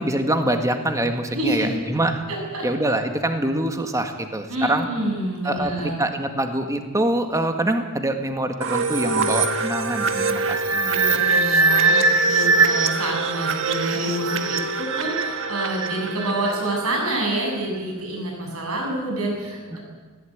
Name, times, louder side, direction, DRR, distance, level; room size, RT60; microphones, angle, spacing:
voice 1, 0.0-2.2 2.6-4.9 5.4-11.0, right 1 dB, 15° right, 6 dB, 1.8 m, -24 dB
voice 2, 1.3-1.7 2.3-2.7 4.5-6.0 10.9-19.8, right 1 dB, 80° right, 0 dB, 8.0 m, -27 dB
sound 1, 8.6-17.2, right 3 dB, 60° right, 1.6 m, -22 dB
19.5 x 16.0 x 8.9 m, 1.4 s
head